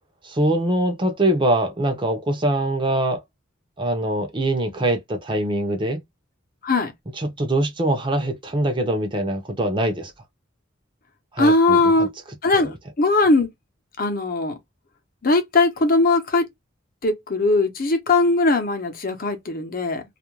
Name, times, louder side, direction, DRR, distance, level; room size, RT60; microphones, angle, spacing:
voice 1, 0.2-3.2 3.8-6.0 7.2-10.1 11.3-12.1, right 1 dB, 25° right, 0.6 m, -23 dB
voice 2, 11.4-12.1 12.4-13.5 14.0-14.6 15.2-16.5 17.0-20.0, left 2 dB, 45° left, 0.7 m, -19 dB
2.4 x 2.1 x 2.9 m
head